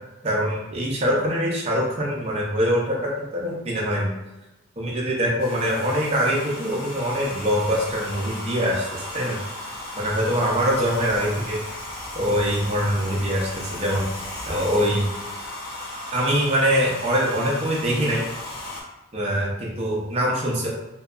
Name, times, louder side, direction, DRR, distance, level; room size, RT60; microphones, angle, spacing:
voice 1, 0.2-4.1 4.8-9.4 10.0-11.6 12.1-14.1 14.5-15.1 16.1-18.2 19.1-20.7, equal, 30° right, -4 dB, 0.4 m, -23 dB
Domestic sounds home sounds, 5.4-18.8, left 1 dB, 75° left, 0.8 m, -35 dB
2.6 x 2.2 x 2.3 m, 1.0 s
head